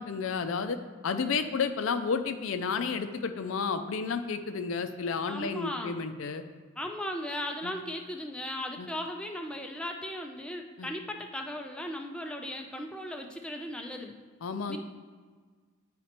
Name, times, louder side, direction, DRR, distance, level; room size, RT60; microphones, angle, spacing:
voice 1, 0.0-6.4 7.6-7.7 8.8-8.9 10.8-10.9 14.4-14.8, left 5 dB, 65° left, 9 dB, 0.4 m, -31 dB
voice 2, 5.3-6.0 6.8-14.1 14.7-14.8, left 1 dB, 5° left, 2 dB, 0.4 m, -37 dB
9.7 x 4.1 x 2.9 m, 1.5 s
head